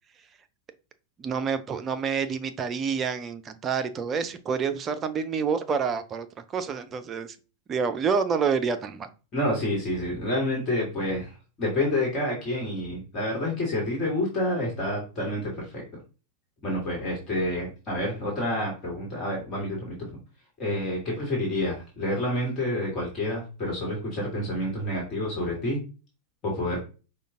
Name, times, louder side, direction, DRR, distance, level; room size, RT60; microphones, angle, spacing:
voice 1, 1.2-6.3 6.5-7.4 7.7-9.1, right 6 dB, 25° right, 0.5 m, -28 dB
voice 2, 9.3-15.8 16.6-20.2 20.6-25.8 26.4-26.8, left 1 dB, 30° left, 1.6 m, -28 dB
5.1 x 2.3 x 3.6 m
figure-of-eight pair, 90°, 0 cm